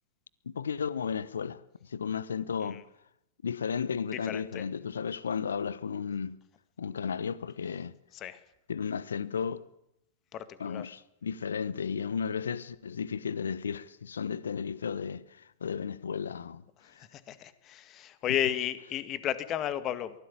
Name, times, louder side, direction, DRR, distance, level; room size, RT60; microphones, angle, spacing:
voice 1, 0.5-2.8 3.4-6.4 6.8-7.9 8.7-9.7 10.6-16.6 16.9-17.0, left 6 dB, 75° left, 1.0 m, -34 dB
voice 2, 4.3-4.6 8.1-8.4 10.3-10.8 16.8-20.1, left 11 dB, 30° left, 2.0 m, -33 dB
23.5 x 16.0 x 8.9 m
figure-of-eight pair, 105°, 0 cm